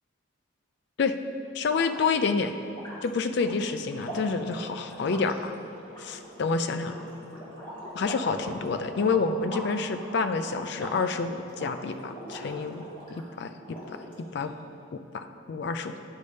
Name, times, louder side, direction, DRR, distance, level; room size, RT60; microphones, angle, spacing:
voice 1, 1.5-2.5 3.0-5.5 6.0-7.0 7.9-13.8 14.3-14.5 15.1-16.0, left 4 dB, 55° left, 9 dB, 0.3 m, -28 dB
sound 1, 1.6-13.2 13.6-14.4, equal, 25° left, 1.6 m, -41 dB
10.0 x 3.4 x 5.3 m, 2.5 s
head